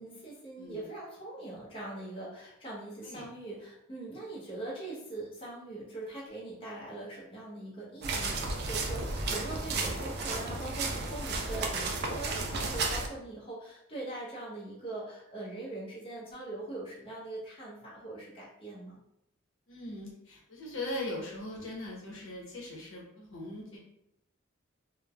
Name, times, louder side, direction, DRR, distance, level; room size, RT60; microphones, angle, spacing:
voice 1, 0.0-19.0, right 2 dB, 25° left, -6 dB, 0.6 m, -42 dB
sound 1, 8.0-13.1, right 3 dB, 55° right, 0.4 m, -33 dB
voice 2, 19.7-23.8, left 1 dB, 75° left, -3 dB, 0.8 m, -40 dB
3.1 x 2.0 x 2.2 m, 0.81 s
head